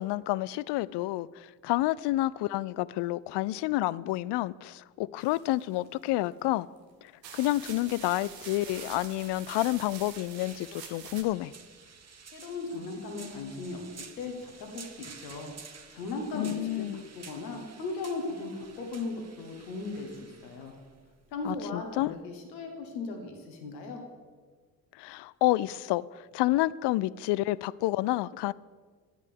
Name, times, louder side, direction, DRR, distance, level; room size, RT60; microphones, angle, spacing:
voice 1, 0.0-6.7 7.0-11.5 16.3-17.0 21.4-22.1 25.0-28.5, left 17 dB, 60° left, 0.5 m, -29 dB
put thing on plastic and remove, 5.2-6.1 6.8-6.9 7.2-11.2, right 7 dB, 85° right, 1.2 m, -46 dB
sound 1, 7.6-22.2, right 5 dB, 30° right, 1.3 m, -52 dB
voice 2, 12.3-15.5 15.9-20.7 21.3-24.0, left 3 dB, 90° left, 1.4 m, -37 dB
11.0 x 8.3 x 6.9 m
hypercardioid pair, 45°, 49 cm